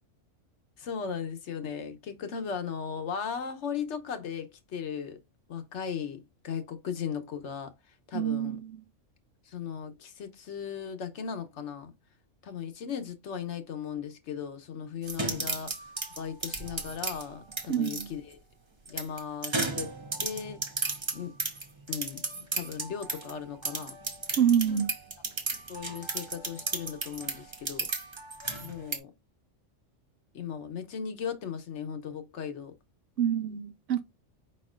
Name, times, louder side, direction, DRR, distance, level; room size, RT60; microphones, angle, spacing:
voice 1, 0.8-5.2 5.5-7.7 8.1-8.6 9.5-11.9 12.4-15.7 16.2-18.4 18.9-20.6 21.1-21.3 21.9-23.9 24.7-24.8 25.7-27.9 28.6-29.1 30.3-32.8, left 7 dB, 65° left, 1.1 m, -37 dB
voice 2, 8.1-8.8 17.7-18.1 24.4-24.9 33.2-34.0, right 9 dB, 70° right, 1.0 m, -27 dB
sound 1, 15.0-18.0 18.9-23.3 23.6-29.0, right 3 dB, 25° right, 0.7 m, -34 dB
5.2 x 4.3 x 2.4 m
omnidirectional pair, 1.3 m